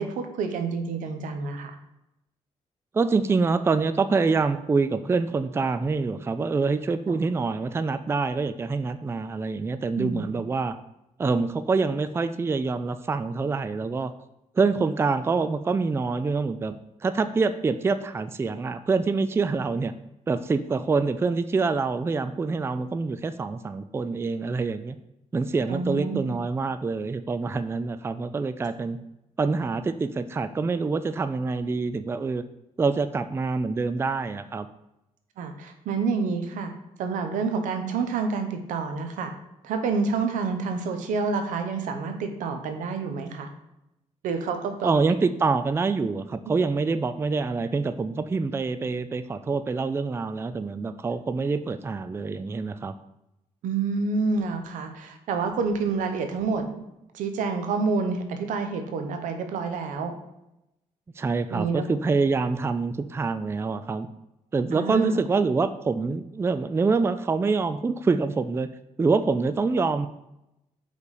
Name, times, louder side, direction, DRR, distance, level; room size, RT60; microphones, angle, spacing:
voice 1, 0.0-1.7 7.1-7.2 10.0-10.3 25.7-26.3 35.4-36.7 37.0-39.3 39.6-43.5 44.2-44.9 53.6-56.7 57.1-60.1 61.5-61.8 64.7-65.2, right 4 dB, 90° right, 6 dB, 0.8 m, -28 dB
voice 2, 2.9-10.7 11.2-14.1 14.6-16.7 17.0-19.9 20.3-25.0 25.3-29.0 29.4-32.4 32.8-34.7 44.8-52.9 61.2-64.1 64.5-68.7 69.0-70.1, right 4 dB, 20° right, 11 dB, 0.3 m, -26 dB
5.3 x 4.0 x 4.8 m, 0.88 s
cardioid pair, 85°, 13 cm